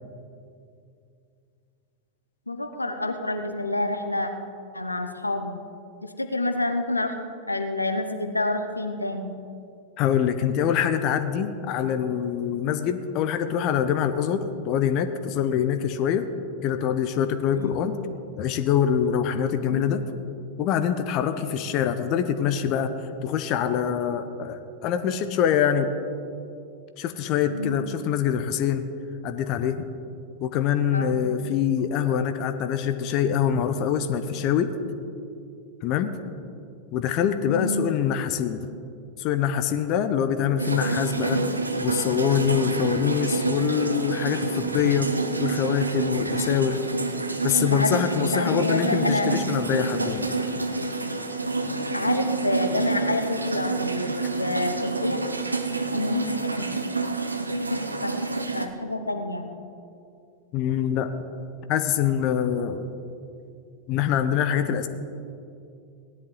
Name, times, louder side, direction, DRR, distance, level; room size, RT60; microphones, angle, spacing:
voice 1, 2.5-4.3 4.7-5.6 6.0-7.1 7.5-9.3 17.5-17.8 19.7-19.9 27.5-27.8 30.9-31.2 37.4-37.9 47.6-48.0 48.3-49.9 51.9-55.2 55.9-56.9 57.4-58.2 58.5-59.5, left 2 dB, 85° left, 7 dB, 0.9 m, -28 dB
voice 2, 10.0-16.3 16.6-18.0 18.4-20.0 20.6-22.9 23.2-25.9 27.0-28.8 29.2-29.8 30.4-34.7 35.8-36.1 36.9-38.7 39.2-45.1 45.4-46.8 47.4-50.3 60.5-61.1 61.7-62.9 63.9-64.9, left 8 dB, 40° left, 9 dB, 0.7 m, -24 dB
sound 1, 40.6-58.7, right 3 dB, 80° right, 0.8 m, -28 dB
17.5 x 11.0 x 3.9 m, 2.5 s
figure-of-eight pair, 90°, 0 cm